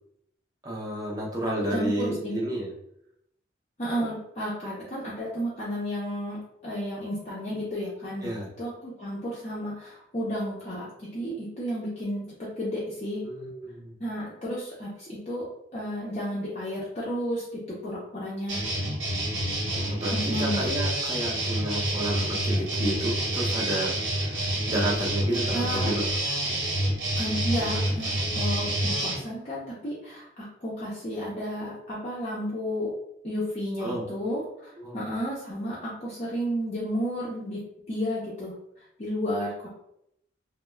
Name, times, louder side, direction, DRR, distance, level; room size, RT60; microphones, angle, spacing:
voice 1, 0.6-2.7 8.2-8.5 13.2-13.9 19.7-26.1 33.8-34.1 34.8-35.0, right 1 dB, 20° right, -3 dB, 0.5 m, -31 dB
voice 2, 1.7-2.3 3.8-13.2 14.0-15.5 15.7-18.6 20.1-20.7 25.5-25.9 27.2-32.9 33.2-37.6 37.9-38.5 39.0-39.7, equal, 35° left, -7 dB, 0.5 m, -32 dB
sound 1, 18.5-29.2, right 1 dB, 60° right, 0.9 m, -28 dB
2.2 x 2.1 x 3.1 m, 0.77 s
head